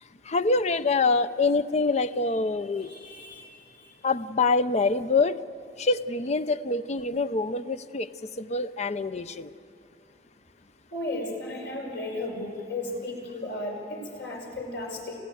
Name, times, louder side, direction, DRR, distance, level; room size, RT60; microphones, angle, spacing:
voice 1, 0.2-2.9 4.0-5.4 5.8-8.1 8.4-9.5, left 3 dB, 40° left, 12 dB, 0.6 m, -25 dB
voice 2, 2.8-4.0 10.9-15.2, left 2 dB, 70° left, 0 dB, 5.3 m, -35 dB
28.5 x 15.0 x 9.3 m, 2.5 s
head